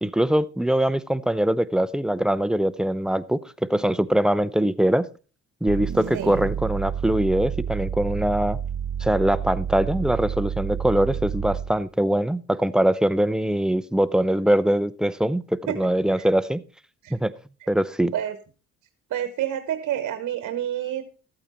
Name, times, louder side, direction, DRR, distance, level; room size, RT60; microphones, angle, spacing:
voice 1, 0.0-5.1 5.6-8.6 9.0-16.6 17.1-17.3 17.7-18.1, right 1 dB, ahead, 0.6 m, -22 dB
sound 1, 5.7-11.8, right 8 dB, 45° right, 0.6 m, -30 dB
voice 2, 6.1-6.5 15.7-15.8 16.2-16.3 17.0-17.1 18.1-18.4 19.1-21.1, right 11 dB, 70° right, 1.2 m, -28 dB
13.5 x 8.8 x 4.3 m
cardioid pair, 90°, 30 cm